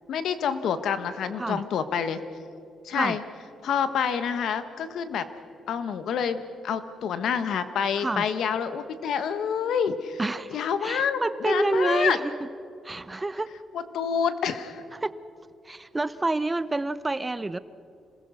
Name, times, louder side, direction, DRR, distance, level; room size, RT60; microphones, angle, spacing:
voice 1, 0.1-2.2 2.8-3.2 3.6-5.2 5.7-10.2 10.5-12.2 13.7-14.8, left 7 dB, 75° left, 11 dB, 1.3 m, -27 dB
voice 2, 10.2-12.5 12.8-13.5 14.9-15.1 15.6-17.6, right 2 dB, 15° right, 15 dB, 0.6 m, -28 dB
27.0 x 20.0 x 6.4 m, 2.4 s
cardioid pair, 105°, 0 cm